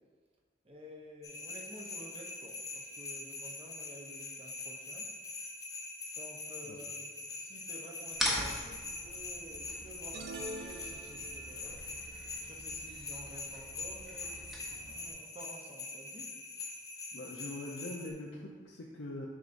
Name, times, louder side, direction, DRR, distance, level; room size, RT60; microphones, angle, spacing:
voice 1, 0.6-5.1 6.1-11.8 12.4-16.3, equal, 30° right, 0 dB, 0.8 m, -51 dB
sound 1, 1.2-18.1, left 3 dB, 20° left, 0.5 m, -43 dB
sound 2, 8.1-15.1, left 1 dB, ahead, 0.9 m, -41 dB
sound 3, 10.1-11.7, right 2 dB, 70° right, 0.4 m, -44 dB
voice 2, 17.1-19.3, left 2 dB, 85° left, -2 dB, 0.6 m, -42 dB
7.4 x 5.5 x 2.6 m, 1.5 s
head